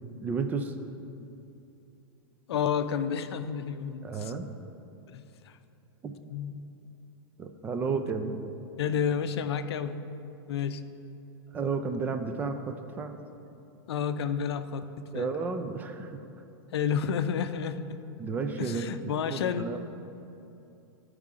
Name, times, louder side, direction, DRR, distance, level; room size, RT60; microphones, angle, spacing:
voice 1, 0.2-0.7 4.0-4.5 6.0-6.2 7.4-8.4 11.5-13.1 15.1-16.4 18.2-19.8, right 4 dB, 15° right, 6 dB, 0.3 m, -32 dB
voice 2, 2.5-4.3 5.1-5.2 6.3-6.7 8.8-10.1 10.5-10.8 13.9-14.9 15.1-15.3 16.7-18.0 18.6-19.7, left 7 dB, 80° left, 11 dB, 0.5 m, -30 dB
13.5 x 4.7 x 3.7 m, 2.8 s
supercardioid pair, 155°, 13 cm